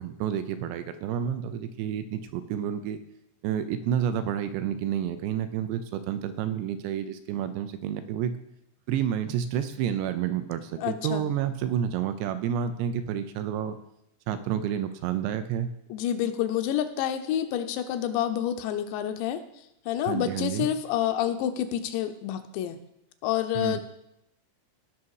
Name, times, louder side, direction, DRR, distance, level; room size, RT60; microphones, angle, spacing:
voice 1, 0.0-3.0 3.4-8.3 8.9-13.8 14.3-15.7 20.1-20.7 23.5-23.8, right 9 dB, 80° right, 10 dB, 2.6 m, -29 dB
voice 2, 10.8-11.2 15.9-19.4 19.9-22.8 23.2-23.8, left 11 dB, 80° left, 8 dB, 2.8 m, -28 dB
17.0 x 6.3 x 4.7 m, 0.80 s
omnidirectional pair, 5.2 m